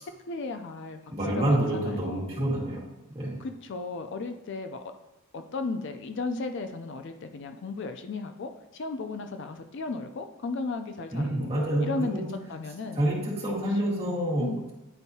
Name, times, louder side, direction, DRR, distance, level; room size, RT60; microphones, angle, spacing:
voice 1, 0.3-1.0 1.4-2.4 3.4-4.8 5.3-11.5 11.8-12.2 12.5-13.0 13.6-14.1 14.4-14.7, left 3 dB, 55° left, 7 dB, 0.4 m, -35 dB
voice 2, 1.1-2.8 3.1-3.4 11.1-12.2 12.9-14.4, right 1 dB, 25° right, -6 dB, 1.9 m, -27 dB
9.8 x 4.5 x 2.8 m, 0.98 s
head